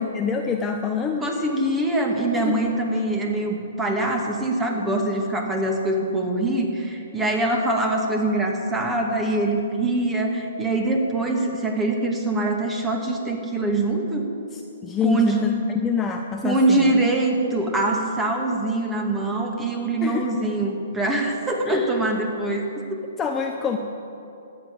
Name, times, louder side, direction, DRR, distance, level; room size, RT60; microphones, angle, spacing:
voice 1, 0.0-1.3 2.3-2.6 14.5-16.9 20.0-20.3 21.6-21.9 23.2-23.8, left 6 dB, 15° left, 3 dB, 0.9 m, -26 dB
voice 2, 1.2-14.3 15.0-15.4 16.4-23.0, right 2 dB, 10° right, 1 dB, 2.4 m, -23 dB
14.0 x 9.9 x 8.9 m, 2.8 s
hypercardioid pair, 125°, 0 cm